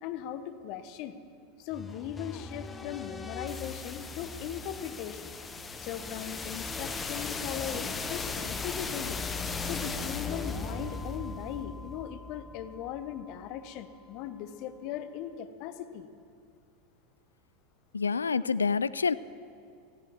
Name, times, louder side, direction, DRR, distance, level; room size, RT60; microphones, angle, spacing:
voice 1, 0.0-1.2 1.6-5.3 5.8-9.2 9.6-16.1, left 10 dB, 50° left, 11 dB, 0.9 m, -39 dB
sound 1, 1.7-13.6, left 4 dB, 20° left, 1.0 m, -38 dB
voice 2, 17.9-19.1, left 5 dB, 85° left, 17 dB, 0.3 m, -27 dB
19.5 x 14.5 x 3.6 m, 2.4 s
figure-of-eight pair, 85°, 0 cm